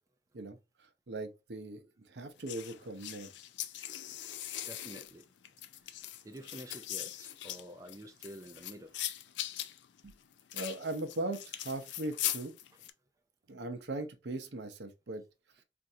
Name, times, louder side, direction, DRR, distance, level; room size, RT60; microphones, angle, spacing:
voice 1, 1.1-1.8 2.1-3.3 10.0-10.1 10.5-12.5 13.5-15.2, right 2 dB, 70° right, 0.6 m, -39 dB
sound 1, 2.5-12.9, left 12 dB, 80° left, 0.4 m, -40 dB
voice 2, 4.7-5.2 6.2-8.9, right 1 dB, 20° right, 0.4 m, -48 dB
4.4 x 2.5 x 2.6 m
head